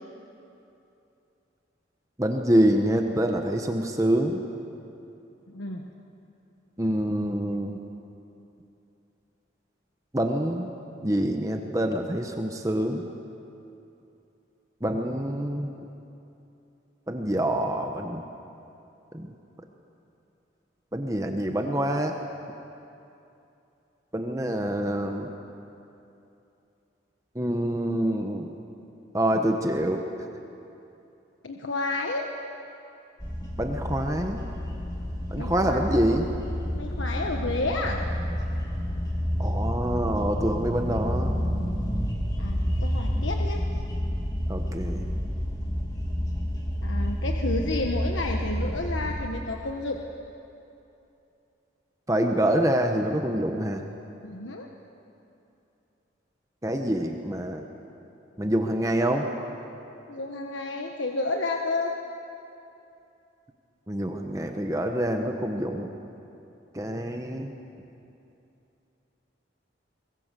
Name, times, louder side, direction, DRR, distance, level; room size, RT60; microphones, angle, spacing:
voice 1, 2.2-4.4 6.8-7.8 10.1-10.8 11.0-13.1 14.8-15.7 17.1-18.2 19.1-19.3 20.9-22.1 24.1-25.3 27.3-28.5 29.1-30.0 33.6-34.4 35.3-36.3 39.4-41.4 44.5-45.1 52.1-53.8 56.6-57.7 58.4-59.3 63.9-65.9 66.7-67.5, right 1 dB, 15° right, 4 dB, 1.1 m, -26 dB
voice 2, 5.5-5.8 31.4-32.3 35.4-35.8 36.8-38.0 42.4-43.6 46.8-50.0 54.2-54.7 60.1-61.9, left 2 dB, 85° left, 2 dB, 1.3 m, -31 dB
sound 1, 33.2-49.2, equal, 20° left, 2.9 m, -29 dB
24.0 x 21.5 x 7.6 m, 2.8 s
head